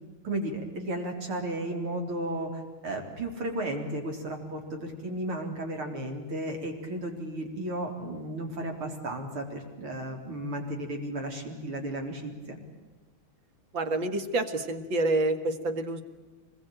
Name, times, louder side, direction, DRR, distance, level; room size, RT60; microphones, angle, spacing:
voice 1, 0.2-12.6, right 1 dB, 85° right, 3 dB, 4.7 m, -34 dB
voice 2, 13.7-16.0, right 2 dB, 65° right, 8 dB, 2.6 m, -28 dB
25.0 x 21.0 x 9.1 m, 1.2 s
omnidirectional pair, 2.3 m